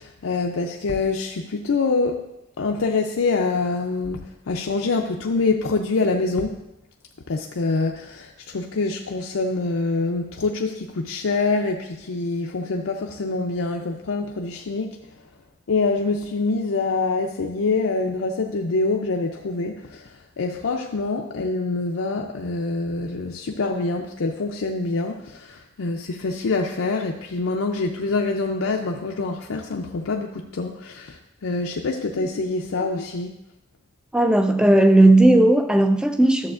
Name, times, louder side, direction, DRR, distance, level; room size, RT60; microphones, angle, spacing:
voice 1, 0.0-2.2 2.6-6.6 7.3-15.0 15.7-33.3, left 3 dB, 85° left, 2 dB, 0.5 m, -25 dB
voice 2, 34.1-36.5, right 1 dB, 5° right, 7 dB, 0.3 m, -16 dB
12.0 x 7.0 x 2.5 m, 0.91 s
head